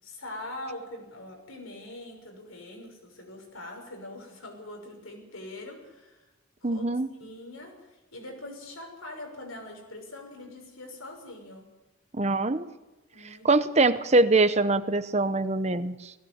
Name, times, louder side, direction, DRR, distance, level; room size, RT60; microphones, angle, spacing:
voice 1, 0.0-6.3 6.6-6.8 7.2-11.7 13.1-13.9, left 1 dB, 80° left, 2 dB, 6.3 m, -43 dB
voice 2, 6.6-7.1 12.1-12.7 13.2-16.1, right 2 dB, 30° right, 12 dB, 0.8 m, -23 dB
19.0 x 17.0 x 8.0 m, 1.1 s
head